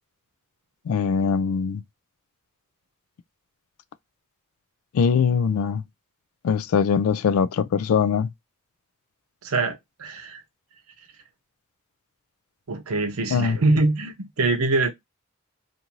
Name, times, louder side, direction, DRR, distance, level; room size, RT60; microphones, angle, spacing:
voice 1, 0.9-1.8 4.9-5.8 6.4-8.3 13.3-13.6, left 6 dB, 80° left, 0.3 m, -22 dB
voice 2, 9.4-10.4 12.7-14.9, right 3 dB, 90° right, 0.7 m, -24 dB
2.5 x 2.5 x 2.9 m
head